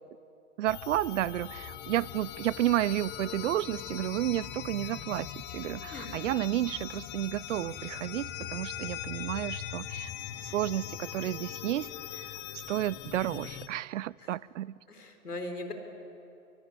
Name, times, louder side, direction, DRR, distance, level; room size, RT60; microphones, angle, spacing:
voice 1, 0.6-10.1 10.4-11.9 12.1-14.8, right 13 dB, 55° right, 24 dB, 0.6 m, -32 dB
sound 1, 0.7-13.7, left 12 dB, 25° left, 1.2 m, -40 dB
voice 2, 5.9-6.2 14.2-14.4 14.9-15.7, left 2 dB, 85° left, 6 dB, 4.2 m, -39 dB
23.5 x 23.0 x 9.9 m, 2.8 s
figure-of-eight pair, 120°, 45 cm